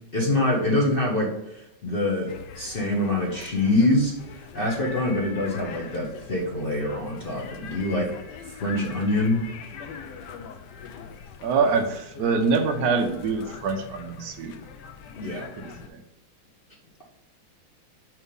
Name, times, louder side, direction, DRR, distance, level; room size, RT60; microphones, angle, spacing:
voice 1, 0.1-2.3 2.6-4.1 4.5-8.1 8.4-9.4 15.2-15.5, left 2 dB, 45° left, -2 dB, 0.7 m, -25 dB
sound 1, 2.3-15.9, left 6 dB, 80° left, 0.9 m, -42 dB
voice 2, 11.4-14.5 15.6-16.0, right 4 dB, 80° right, 6 dB, 0.8 m, -25 dB
5.9 x 3.2 x 5.2 m, 0.90 s
omnidirectional pair, 2.3 m